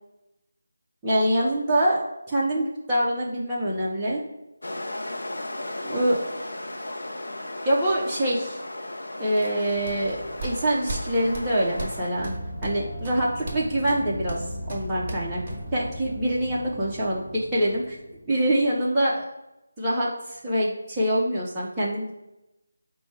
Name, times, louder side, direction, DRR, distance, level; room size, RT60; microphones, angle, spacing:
voice 1, 1.0-2.0 2.3-4.2 5.8-6.3 7.6-8.6 9.2-12.3 12.6-15.4 15.7-18.0 18.3-19.2 19.8-22.1, right 1 dB, 10° right, -9 dB, 0.6 m, -25 dB
sound 1, 4.6-12.1, left 1 dB, 70° left, 0.6 m, -35 dB
sound 2, 9.6-15.9, right 1 dB, 30° right, 1.4 m, -38 dB
sound 3, 12.1-18.9, equal, 30° left, 0.7 m, -38 dB
5.1 x 2.1 x 4.6 m, 0.93 s
figure-of-eight pair, 160°, 0 cm